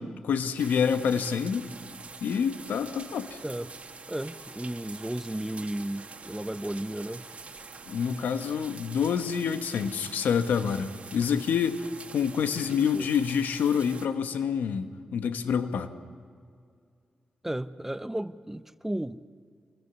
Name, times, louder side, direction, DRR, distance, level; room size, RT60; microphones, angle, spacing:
voice 1, 0.0-1.7 2.2-3.4 7.9-11.9 12.1-15.9, left 7 dB, 80° left, 1.3 m, -27 dB
sound 1, 0.6-14.1, right 4 dB, 50° right, 2.2 m, -45 dB
voice 2, 3.4-3.7 4.1-7.3 12.6-13.1 17.4-19.2, right 1 dB, 10° right, 1.0 m, -34 dB
27.0 x 21.0 x 7.1 m
supercardioid pair, 45°, 3 cm